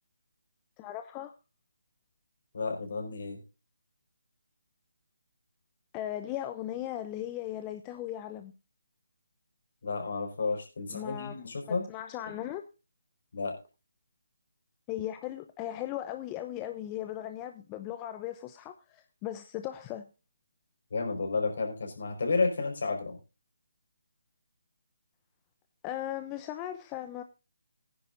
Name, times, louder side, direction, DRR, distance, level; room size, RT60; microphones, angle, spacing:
voice 1, 0.8-1.3 5.9-8.5 10.9-11.4 11.7-12.6 14.9-20.1 25.8-27.2, left 12 dB, 20° left, 0.7 m, -37 dB
voice 2, 2.5-3.4 9.8-11.9 13.3-13.6 20.9-23.2, left 4 dB, 60° left, 5.0 m, -31 dB
17.5 x 10.0 x 2.6 m
figure-of-eight pair, 155°, 0 cm